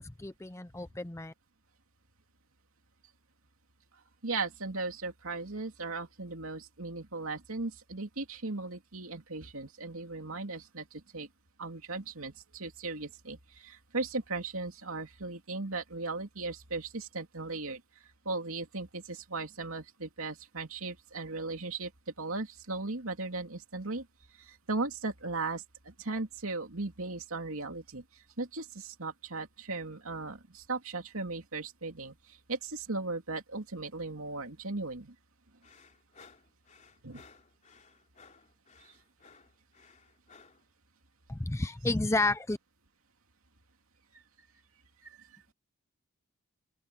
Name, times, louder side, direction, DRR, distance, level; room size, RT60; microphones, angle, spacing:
voice 1, 0.0-1.3 41.3-42.6, left 2 dB, 15° left, 0.5 m, -31 dB
voice 2, 4.2-11.3 11.6-17.8 18.2-21.9 22.2-24.1 24.5-28.0 28.4-32.1 32.5-35.1 37.0-37.2 45.0-45.2, right 3 dB, 80° right, 2.7 m, -37 dB
sound 1, 35.6-40.7, left 5 dB, 35° left, 3.6 m, -58 dB
open air
head